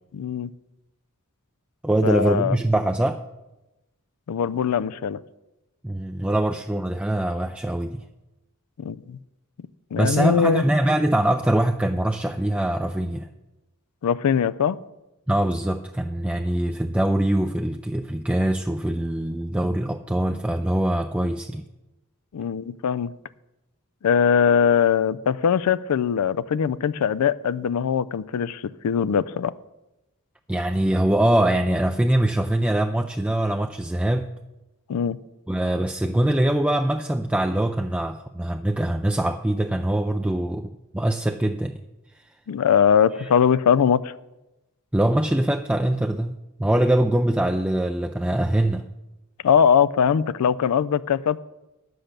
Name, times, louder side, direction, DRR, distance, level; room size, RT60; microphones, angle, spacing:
voice 1, 0.1-0.5 2.0-2.6 4.3-5.2 8.8-9.2 9.9-10.6 14.0-14.8 22.3-23.1 24.0-29.5 34.9-35.2 42.5-44.1 49.4-51.4, left 7 dB, 85° left, 17 dB, 0.4 m, -21 dB
voice 2, 1.8-3.2 5.8-8.0 10.0-13.3 15.3-21.6 30.5-34.3 35.5-41.7 44.9-48.8, right 1 dB, 5° right, 5 dB, 0.3 m, -23 dB
10.0 x 7.8 x 6.6 m, 0.98 s
head